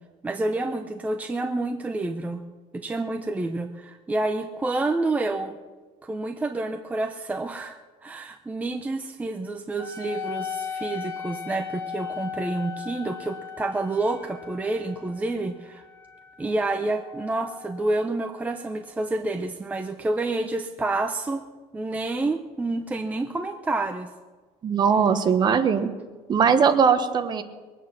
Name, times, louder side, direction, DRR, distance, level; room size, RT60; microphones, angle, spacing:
voice 1, 0.2-2.4 2.7-5.5 6.0-15.8 16.4-21.4 21.7-24.1, right 2 dB, 10° right, 5 dB, 0.7 m, -28 dB
Wind instrument woodwind instrument, 9.8-18.7, left 7 dB, 25° left, 2.2 m, -38 dB
voice 2, 24.6-25.9 26.3-27.4, right 6 dB, 35° right, 8 dB, 1.2 m, -20 dB
22.0 x 9.1 x 6.0 m, 1.3 s
cardioid pair, 145°, 13 cm